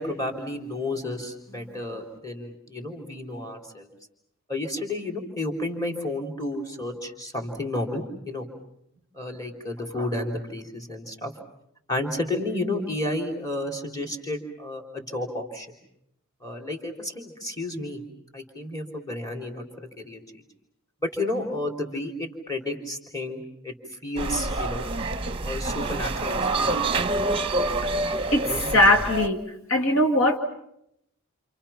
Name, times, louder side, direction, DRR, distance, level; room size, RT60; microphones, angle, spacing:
voice 1, 0.0-3.9 4.5-8.5 9.1-11.3 11.9-15.7 16.4-18.0 18.3-19.6 20.1-20.2 21.0-23.7 24.0-24.9 25.4-26.6 27.0-27.1, left 1 dB, 15° left, 2 dB, 3.8 m, -31 dB
sound 1, 24.2-29.3, right 2 dB, 25° right, 1.0 m, -27 dB
voice 2, 28.3-29.4 29.7-30.4, left 1 dB, 65° left, 3 dB, 2.1 m, -20 dB
29.0 x 28.5 x 5.8 m, 0.78 s
head